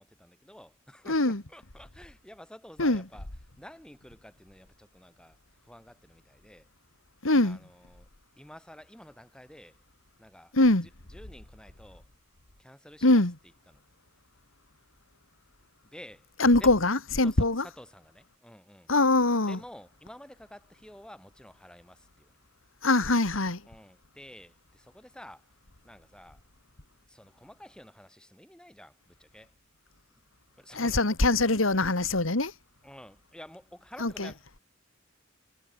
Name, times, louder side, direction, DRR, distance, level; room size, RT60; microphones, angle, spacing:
voice 1, 0.0-3.3 3.6-5.4 5.7-6.6 7.4-8.1 8.4-9.7 10.2-10.5 11.1-12.0 12.6-13.2 15.8-16.2 16.6-16.7 17.2-17.4 17.6-18.9 19.5-22.3 23.7-25.4 25.8-26.4 27.1-29.5 30.6-31.0 32.8-34.6, equal, 5° left, 7.5 m, -50 dB
voice 2, 1.1-1.4 2.8-3.1 7.2-7.6 10.5-10.9 13.0-13.4 16.4-17.7 18.9-19.6 22.8-23.6 30.7-32.5 34.0-34.3, left 2 dB, 80° left, 2.5 m, -23 dB
head